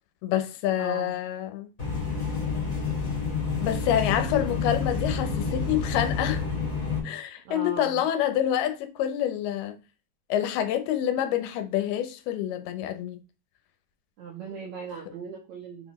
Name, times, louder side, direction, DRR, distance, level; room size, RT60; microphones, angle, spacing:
voice 1, 0.2-1.7 3.6-6.4 7.0-9.8 10.3-13.2, left 10 dB, 85° left, 2.7 m, -27 dB
voice 2, 0.8-1.2 4.3-4.6 7.4-8.0 14.2-15.9, right 5 dB, 70° right, 1.8 m, -39 dB
sound 1, 1.8-7.0, left 5 dB, 15° left, 1.2 m, -29 dB
5.8 x 4.1 x 4.1 m
omnidirectional pair, 4.4 m